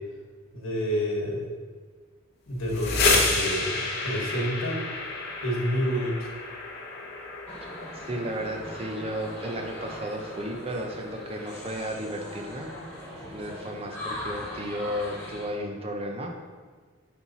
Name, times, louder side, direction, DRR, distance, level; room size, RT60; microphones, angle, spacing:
voice 1, 0.5-1.5 2.5-4.8 5.4-6.3, equal, 75° left, -2 dB, 1.4 m, -28 dB
sound 1, 2.5-12.3, left 3 dB, 50° left, 0.9 m, -31 dB
sound 2, 7.5-15.5, equal, 5° left, 1.6 m, -40 dB
voice 2, 8.1-12.7 13.3-16.4, equal, 30° right, 2 dB, 0.6 m, -33 dB
5.5 x 4.4 x 4.1 m, 1.5 s
head